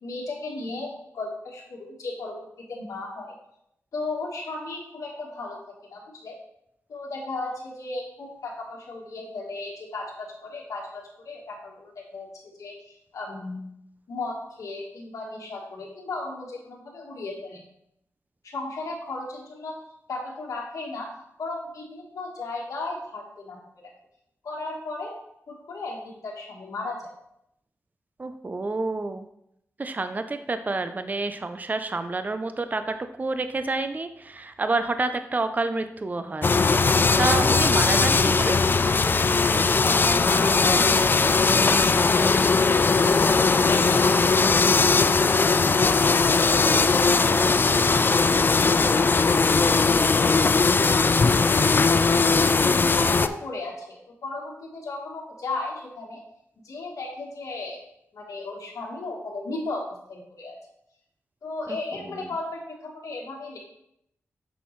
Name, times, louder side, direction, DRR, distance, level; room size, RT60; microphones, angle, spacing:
voice 1, 0.0-2.4 2.7-3.3 3.9-5.6 5.9-6.4 6.9-12.3 12.6-13.6 14.1-17.6 18.5-19.8 20.1-21.1 21.4-23.8 24.4-25.1 25.5-27.1 39.8-41.7 42.2-43.2 43.6-45.4 45.8-50.3 50.8-51.7 52.7-56.2 56.6-57.8 58.1-60.6 61.4-63.6, left 2 dB, 80° left, -3 dB, 1.4 m, -35 dB
voice 2, 28.2-29.3 29.8-38.6 61.7-62.1, right 3 dB, 30° right, 9 dB, 0.5 m, -29 dB
sound 1, 36.4-53.3, left 4 dB, 40° left, 0.3 m, -19 dB
6.9 x 6.1 x 3.1 m, 0.77 s
cardioid pair, 65°, 6 cm